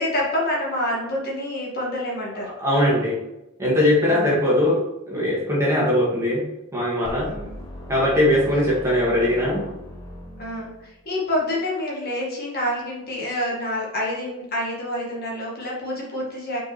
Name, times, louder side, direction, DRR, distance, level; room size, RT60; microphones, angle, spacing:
voice 1, 0.0-2.5 4.1-4.3 7.1-7.6 10.4-16.6, left 1 dB, 45° left, -4 dB, 2.0 m, -27 dB
voice 2, 2.6-3.2 3.6-6.4 6.7-7.3 7.9-9.6, left 1 dB, 15° right, -5 dB, 2.0 m, -20 dB
sound 1, 7.0-11.1, equal, 20° left, 1.2 m, -38 dB
6.2 x 4.8 x 4.3 m, 0.92 s
head